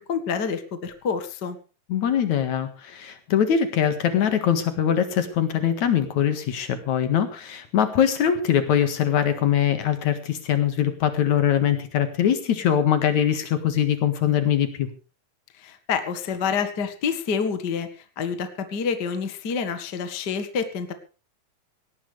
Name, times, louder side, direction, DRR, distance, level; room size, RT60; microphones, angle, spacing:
voice 1, 0.1-1.6 15.6-17.9 18.2-20.9, left 6 dB, 45° left, 8 dB, 1.5 m, -27 dB
voice 2, 1.9-14.9, left 9 dB, 60° left, 9 dB, 2.8 m, -22 dB
18.5 x 16.5 x 3.4 m, 0.35 s
omnidirectional pair, 4.1 m